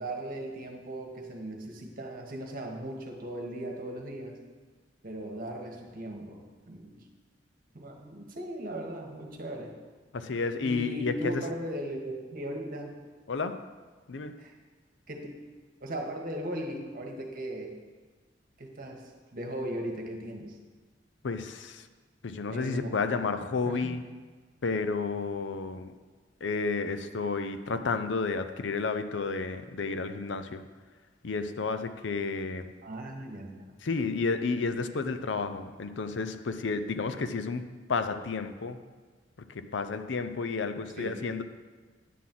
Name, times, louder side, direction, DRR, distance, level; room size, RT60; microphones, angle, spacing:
voice 1, 0.0-4.4 5.0-7.0 7.7-9.8 10.6-13.1 14.4-14.5 15.1-15.3 15.8-17.7 18.6-20.6 22.5-22.9 23.6-24.0 32.8-33.7 41.0-41.3, right 1 dB, 50° right, 2 dB, 1.3 m, -38 dB
voice 2, 10.1-11.4 13.3-13.7 14.1-14.4 21.2-21.9 22.2-24.0 24.6-25.9 26.4-30.6 31.2-32.7 33.8-38.8 39.5-41.4, left 4 dB, 75° left, 9 dB, 0.6 m, -31 dB
10.0 x 4.0 x 7.5 m, 1.4 s
head